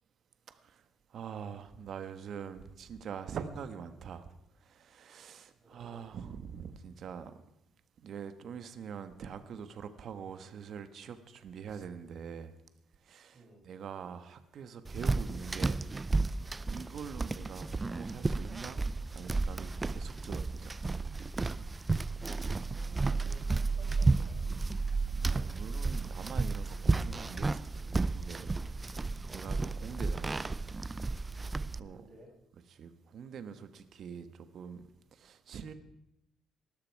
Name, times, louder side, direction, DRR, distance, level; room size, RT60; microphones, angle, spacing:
voice 1, 0.5-0.8 1.1-4.2 4.6-7.3 8.0-12.6 13.0-15.8 16.7-18.8 19.1-20.8 22.5-22.7 24.9-27.6 28.0-30.5 31.8-32.1 32.7-35.7, right 7 dB, 55° right, 11 dB, 1.4 m, -44 dB
voice 2, 5.5-6.1 13.3-13.7 22.7-24.5 28.7-29.0 31.8-32.3, right 2 dB, 35° right, -6 dB, 5.6 m, -56 dB
sound 1, 14.8-31.8, right 3 dB, 20° right, 0.4 m, -32 dB
19.5 x 13.0 x 4.7 m, 0.83 s
cardioid pair, 125°, 0 cm